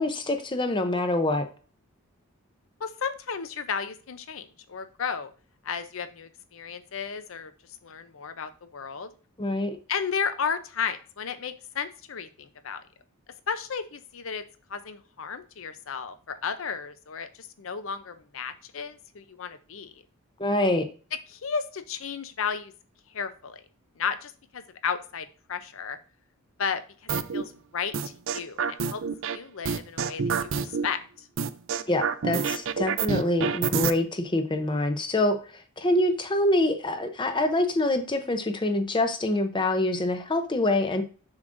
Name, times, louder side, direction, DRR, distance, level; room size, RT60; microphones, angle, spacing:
voice 1, 0.0-1.5 9.4-9.8 20.4-20.8 31.9-35.4 35.8-41.0, left 1 dB, 20° left, 7 dB, 0.6 m, -25 dB
voice 2, 2.8-5.3 5.6-7.5 7.8-9.1 9.9-12.8 13.5-14.4 14.7-19.9 21.3-22.7 23.1-23.6 24.0-26.0 26.6-26.8 27.3-29.0 29.3-31.3, left 6 dB, 65° left, 11 dB, 0.6 m, -33 dB
sound 1, 27.1-27.4 27.9-29.4 29.6-30.9 31.4-33.9, right 6 dB, 60° right, 0.4 m, -27 dB
7.2 x 6.3 x 2.6 m, 0.38 s
head